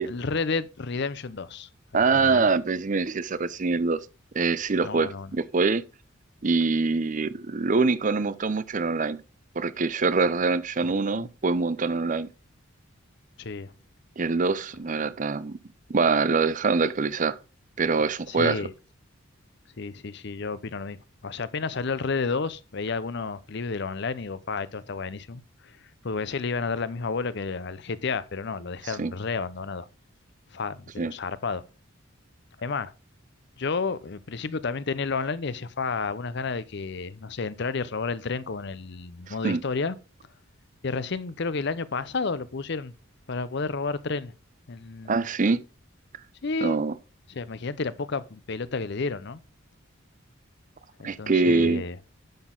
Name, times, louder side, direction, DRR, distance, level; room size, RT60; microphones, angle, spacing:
voice 1, 0.0-2.5 4.8-5.3 10.8-11.3 13.4-13.7 18.3-18.7 19.8-25.8 26.0-29.9 30.5-31.6 32.6-32.9 33.6-40.0 40.8-42.9 43.3-44.3 44.7-45.2 46.4-46.8 47.3-49.4 51.0-52.0, left 4 dB, 55° left, 0.6 m, -31 dB
voice 2, 1.9-4.1 4.3-5.8 6.4-9.2 9.6-12.3 14.2-15.6 15.9-17.3 17.8-18.7 28.8-29.1 31.0-31.1 39.3-39.6 45.1-45.6 46.6-46.9 51.0-51.8, right 4 dB, 40° right, 0.5 m, -24 dB
10.5 x 6.1 x 3.8 m
head